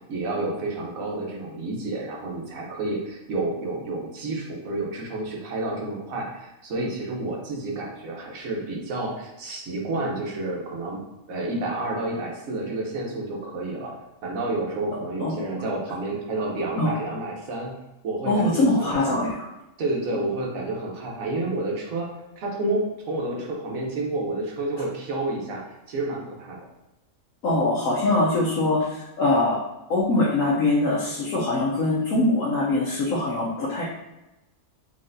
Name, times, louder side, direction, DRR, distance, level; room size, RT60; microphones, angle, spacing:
voice 1, 0.1-11.0 11.3-13.9 14.2-17.8 18.0-19.2 19.8-22.1 22.4-26.6, right 2 dB, 90° right, -1 dB, 1.3 m, -30 dB
voice 2, 15.2-15.6 16.8-16.9 18.2-19.5 27.4-29.6 29.9-33.8, left 2 dB, 80° left, -6 dB, 1.2 m, -23 dB
4.1 x 3.4 x 2.6 m, 0.99 s
omnidirectional pair, 1.4 m